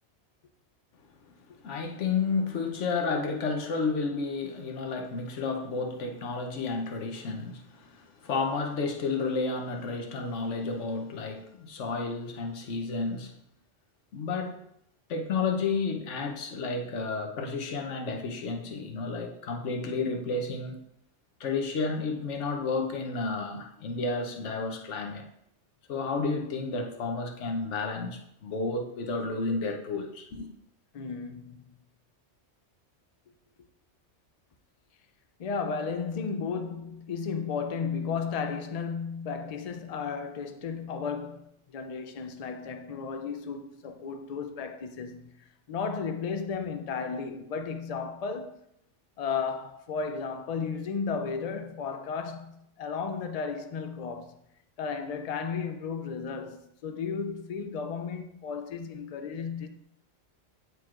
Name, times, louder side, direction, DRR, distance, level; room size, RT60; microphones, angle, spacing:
voice 1, 1.6-13.3 14.1-14.6 15.1-20.8 21.4-25.2 25.9-30.5, left 4 dB, 80° left, 1.1 m, -31 dB
voice 2, 30.9-31.7 35.4-48.6 49.2-54.4 54.8-59.7, left 5 dB, 55° left, 0.4 m, -34 dB
9.4 x 4.5 x 2.4 m
omnidirectional pair, 1.2 m